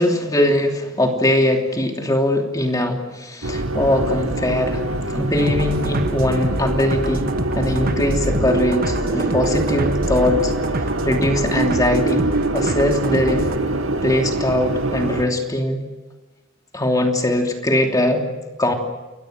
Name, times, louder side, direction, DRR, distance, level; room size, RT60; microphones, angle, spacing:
voice 1, 0.0-4.8 5.1-10.5 11.0-12.3 12.5-13.4 14.0-15.8 16.7-18.2 18.6-18.7, left 1 dB, 20° left, 2 dB, 2.9 m, -21 dB
sound 1, 3.4-15.2, right 2 dB, 80° right, 2.4 m, -24 dB
sound 2, 5.4-13.6, right 2 dB, 45° right, 1.5 m, -28 dB
30.0 x 22.5 x 6.4 m, 1.1 s
head